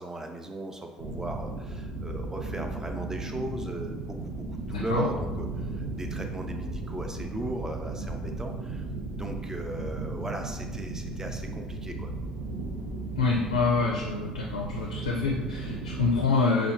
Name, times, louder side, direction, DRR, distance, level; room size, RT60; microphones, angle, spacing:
voice 1, 0.0-8.9 9.1-12.1, right 2 dB, 15° right, 4 dB, 0.5 m, -37 dB
sound 1, 1.0-16.2, right 2 dB, 70° right, 0.6 m, -35 dB
voice 2, 4.7-5.1 13.2-16.7, left 4 dB, 85° left, -2 dB, 0.4 m, -26 dB
5.8 x 2.3 x 2.4 m, 1.2 s
figure-of-eight pair, 55°, 3 cm